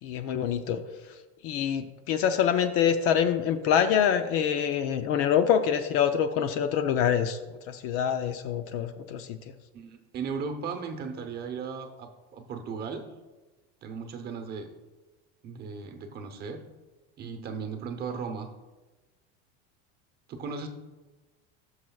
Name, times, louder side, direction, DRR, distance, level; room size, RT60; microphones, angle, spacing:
voice 1, 0.0-1.1 1.4-9.4, left 8 dB, 45° left, 9 dB, 0.5 m, -26 dB
voice 2, 9.7-13.1 13.8-14.7 15.4-16.6 17.2-18.5 20.3-20.7, right 5 dB, 30° right, 6 dB, 0.9 m, -36 dB
17.5 x 6.4 x 2.3 m, 1.2 s
cardioid pair, 160°, 32 cm